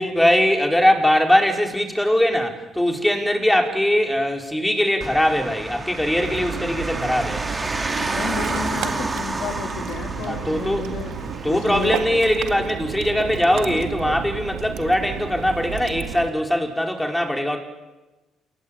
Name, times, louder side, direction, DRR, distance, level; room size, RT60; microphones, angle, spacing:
voice 1, 0.0-7.4 10.3-10.8 11.4-17.6, left 1 dB, 5° left, 3 dB, 5.1 m, -21 dB
sound 1, 5.0-11.9, right 2 dB, 25° right, 3.9 m, -30 dB
Ocean, 6.2-16.3, right 8 dB, 75° right, 1.9 m, -32 dB
voice 2, 8.1-11.2 11.5-12.0, left 6 dB, 70° left, 6 dB, 2.7 m, -32 dB
28.0 x 18.0 x 9.0 m, 1.1 s
hypercardioid pair, 60°, 0 cm